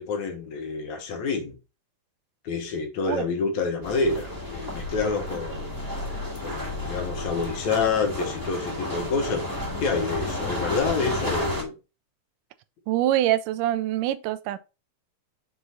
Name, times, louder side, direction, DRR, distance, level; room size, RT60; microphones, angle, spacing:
voice 1, 0.0-1.6 2.4-5.9 6.4-9.4 9.8-11.7, left 4 dB, 65° left, 2.5 m, -28 dB
sound 1, 3.8-11.6, left 1 dB, 10° right, 1.7 m, -32 dB
voice 2, 12.9-14.6, right 13 dB, 85° right, 2.2 m, -24 dB
6.5 x 4.8 x 4.1 m
omnidirectional pair, 3.7 m